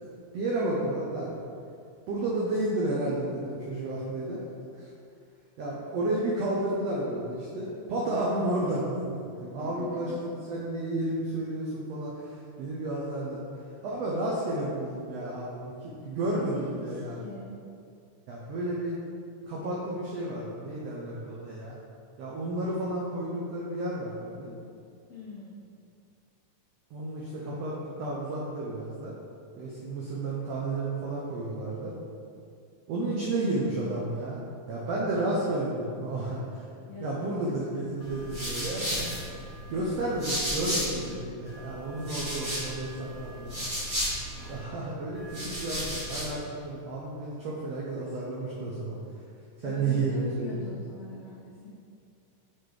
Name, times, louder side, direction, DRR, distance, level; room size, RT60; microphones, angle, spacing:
voice 1, 0.3-1.3 2.1-4.4 4.7-4.9 5.6-13.5 13.8-15.7 16.0-17.2 18.3-18.9 19.5-21.8 22.2-24.5 26.9-29.1 29.6-31.9 32.9-34.4 34.7-36.6 37.0-39.1 39.7-43.7 44.5-49.0 49.6-50.6, right 2 dB, 80° right, -5 dB, 1.4 m, -32 dB
voice 2, 9.6-10.2 16.2-17.6 25.1-25.7 36.8-37.6 39.7-39.9 49.6-51.7, left 2 dB, 70° left, -8 dB, 1.5 m, -42 dB
sound 1, 38.0-41.1 41.4-44.6 45.1-46.4, equal, 40° right, 0.7 m, -34 dB
6.7 x 4.2 x 4.8 m, 2.4 s
omnidirectional pair, 3.9 m